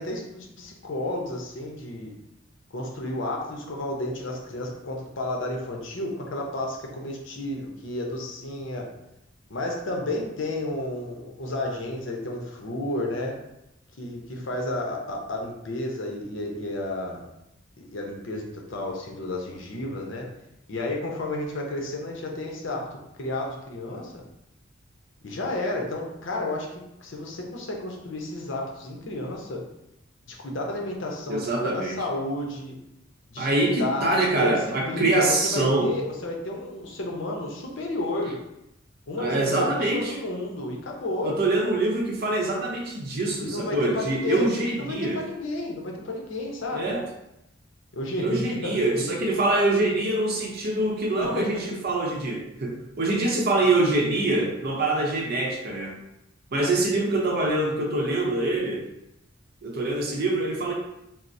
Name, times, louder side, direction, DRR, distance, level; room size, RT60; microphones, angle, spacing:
voice 1, 0.0-2.1 2.7-8.9 9.5-13.4 14.0-17.2 17.8-20.2 20.7-24.1 25.2-29.6 30.3-32.7 33.3-33.5 33.8-38.4 39.1-41.4 43.4-46.9 47.9-49.1 51.4-51.5, left 1 dB, 65° left, 0 dB, 0.7 m, -32 dB
voice 2, 31.3-32.0 33.4-35.9 39.2-40.2 41.2-45.2 46.7-47.0 48.1-56.0 56.5-58.8 59.6-60.7, right 2 dB, 50° right, -1 dB, 0.7 m, -24 dB
4.4 x 2.0 x 2.6 m, 0.84 s
head